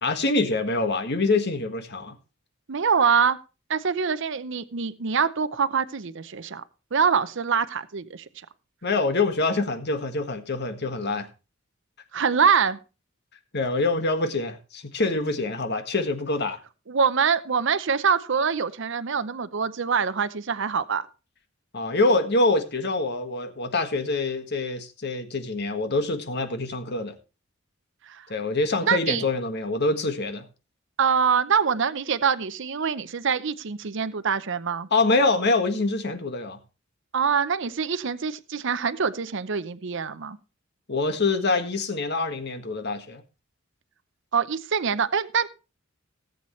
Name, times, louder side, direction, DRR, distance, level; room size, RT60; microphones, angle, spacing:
voice 1, 0.0-2.2 8.8-11.3 13.5-16.6 21.7-27.2 28.3-30.5 34.9-36.6 40.9-43.2, left 3 dB, 55° left, 8 dB, 1.6 m, -25 dB
voice 2, 2.7-3.4 3.7-6.6 6.9-8.2 12.1-12.8 16.9-21.1 28.1-28.3 28.8-29.2 31.0-34.9 37.1-40.4 44.3-45.5, right 6 dB, 65° right, 14 dB, 0.7 m, -24 dB
18.0 x 8.1 x 3.1 m, 0.32 s
head